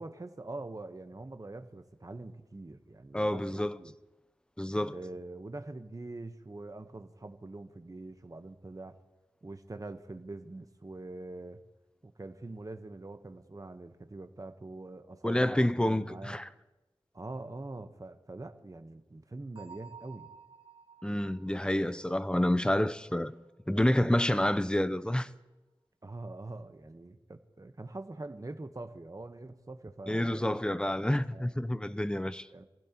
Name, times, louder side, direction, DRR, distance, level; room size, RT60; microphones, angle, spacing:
voice 1, 0.0-3.9 4.8-9.0 9.4-11.6 12.0-16.4 17.1-20.3 26.0-31.6 32.5-32.6, right 2 dB, 35° right, 1.1 m, -44 dB
voice 2, 3.1-3.8 4.6-5.0 15.2-16.5 21.0-23.3 23.7-25.3 30.1-32.5, left 1 dB, 10° left, 0.6 m, -28 dB
Bell, 19.6-23.2, right 6 dB, 60° right, 1.5 m, -54 dB
27.0 x 15.5 x 3.0 m
wide cardioid pair, 65°, 10 cm